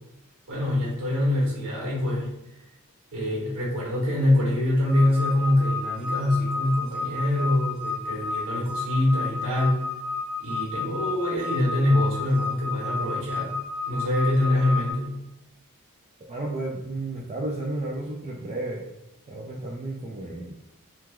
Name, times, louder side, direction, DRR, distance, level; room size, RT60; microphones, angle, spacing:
voice 1, 0.5-2.3 3.1-9.8 10.4-13.6 13.8-15.1, left 1 dB, 65° right, -5 dB, 1.4 m, -24 dB
sound 1, 4.9-14.9, left 4 dB, 50° left, 0.5 m, -32 dB
voice 2, 16.3-18.8 19.3-20.5, right 2 dB, 30° right, -2 dB, 0.3 m, -32 dB
3.1 x 2.3 x 2.2 m, 0.90 s
head